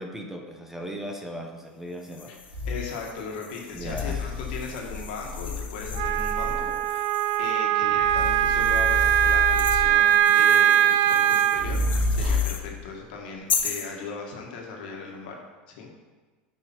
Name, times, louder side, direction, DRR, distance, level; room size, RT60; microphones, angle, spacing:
voice 1, 0.0-2.4 3.7-4.2, equal, 5° right, 3 dB, 1.0 m, -37 dB
sound 1, 2.0-7.6 8.2-12.7 13.5-13.9, left 7 dB, 35° left, 0.8 m, -37 dB
sound 2, 2.5-2.8 3.7-6.7 7.9-10.2 11.5-12.6, left 3 dB, 85° right, 2.6 m, -29 dB
voice 2, 2.6-15.4 15.8-15.9, left 4 dB, 75° left, 0 dB, 1.7 m, -38 dB
Wind instrument woodwind instrument, 6.0-11.7, right 10 dB, 60° right, 0.4 m, -21 dB
8.4 x 5.0 x 4.5 m, 1.4 s
hypercardioid pair, 105°, 5 cm